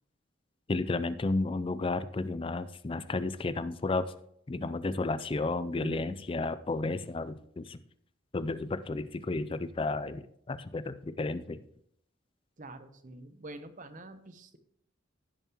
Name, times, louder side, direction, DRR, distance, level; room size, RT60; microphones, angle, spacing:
voice 1, 0.7-4.1 4.5-7.8 8.3-11.6, left 3 dB, 25° left, 13 dB, 0.4 m, -32 dB
voice 2, 5.7-6.2 12.6-14.6, equal, 40° right, 10 dB, 0.8 m, -44 dB
16.0 x 7.1 x 2.9 m, 0.72 s
head